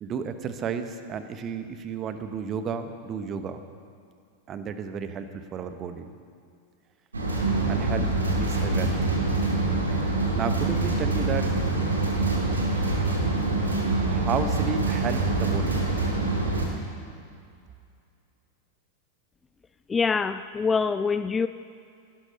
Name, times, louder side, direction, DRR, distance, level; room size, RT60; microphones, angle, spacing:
voice 1, 0.0-3.6 4.5-6.1 7.7-9.0 10.3-11.5 14.1-15.8, right 6 dB, 30° right, 9 dB, 1.1 m, -32 dB
sound 1, 7.1-16.7, right 2 dB, 75° right, 2.5 m, -25 dB
voice 2, 19.9-21.5, left 5 dB, 15° left, 12 dB, 0.4 m, -25 dB
18.5 x 12.0 x 5.4 m, 2.4 s
figure-of-eight pair, 90°, 0 cm